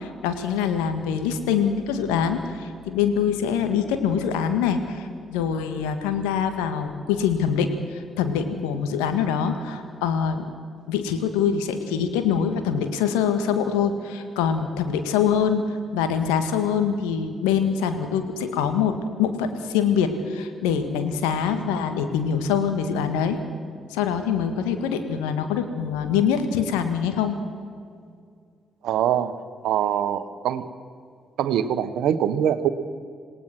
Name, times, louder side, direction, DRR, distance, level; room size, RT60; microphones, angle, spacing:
voice 1, 0.0-10.5 10.9-23.4 23.9-27.4, left 7 dB, 75° left, 7 dB, 1.8 m, -24 dB
voice 2, 28.8-29.3 29.6-30.6 31.4-32.7, right 10 dB, 65° right, 12 dB, 1.2 m, -23 dB
27.0 x 19.0 x 6.2 m, 2.2 s
hypercardioid pair, 40°, 0 cm